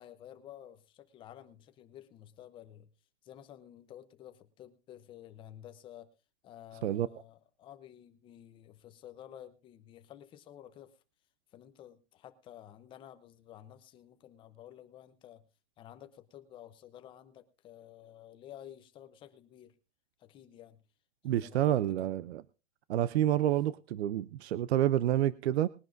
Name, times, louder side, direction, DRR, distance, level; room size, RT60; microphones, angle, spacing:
voice 1, 0.0-2.9 3.2-6.1 6.4-11.0 11.5-15.4 15.8-19.8 20.2-20.8 21.2-22.1 23.4-23.6, left 11 dB, 15° left, 9 dB, 0.7 m, -52 dB
voice 2, 21.2-22.4 22.9-25.7, right 12 dB, 65° right, 18 dB, 0.6 m, -28 dB
21.0 x 10.5 x 2.6 m, 0.31 s
supercardioid pair, 170°, 34 cm